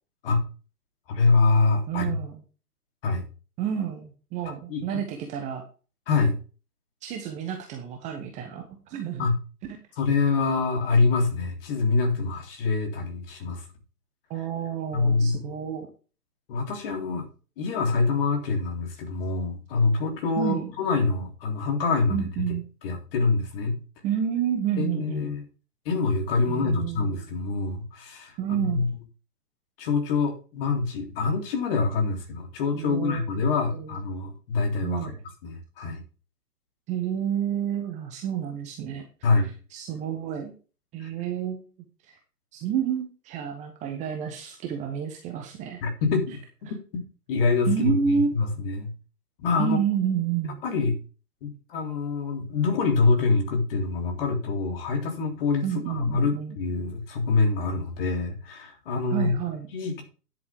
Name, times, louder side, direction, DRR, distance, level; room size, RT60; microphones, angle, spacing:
voice 1, 1.1-2.1 3.0-3.2 4.4-4.8 6.1-6.4 9.2-9.4 10.0-13.6 14.9-15.6 16.5-17.2 17.6-22.3 22.8-23.8 24.8-25.4 25.8-28.9 29.8-35.1 35.4-36.0 39.2-39.5 41.0-41.1 45.8-46.4 47.3-48.9 49.4-49.8 50.6-51.0 51.4-59.3 59.7-60.0, left 4 dB, 35° left, 3 dB, 3.4 m, -25 dB
voice 2, 1.9-2.4 3.6-5.6 7.0-9.3 14.3-15.9 20.4-20.7 22.1-22.6 24.0-25.3 26.5-27.1 28.4-28.9 32.7-33.2 33.7-33.9 34.8-35.1 36.9-39.0 39.4-40.5 40.9-41.6 42.0-42.2 42.5-45.8 47.7-48.5 49.6-50.6 55.6-56.6 59.1-59.7, right 8 dB, 15° right, 4 dB, 1.0 m, -29 dB
10.0 x 8.1 x 3.6 m, 0.35 s
figure-of-eight pair, 130°, 47 cm